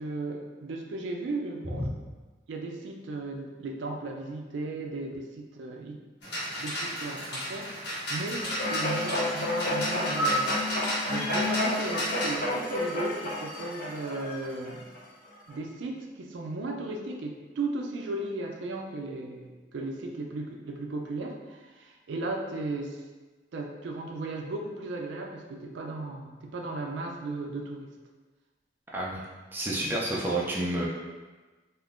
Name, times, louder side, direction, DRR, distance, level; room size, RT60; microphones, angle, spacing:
voice 1, 0.0-1.9 2.5-6.0 6.6-10.6 11.1-14.9 15.5-23.0 23.5-27.9, right 2 dB, 85° right, 2 dB, 0.4 m, -36 dB
sound 1, 6.2-12.4, equal, 65° left, 1.2 m, -34 dB
sound 2, 8.4-15.0 15.5-15.6, left 1 dB, 45° left, 0.8 m, -30 dB
voice 2, 28.9-29.2 29.5-30.9, right 1 dB, 10° right, -5 dB, 0.4 m, -29 dB
3.4 x 2.5 x 2.4 m, 1.3 s
head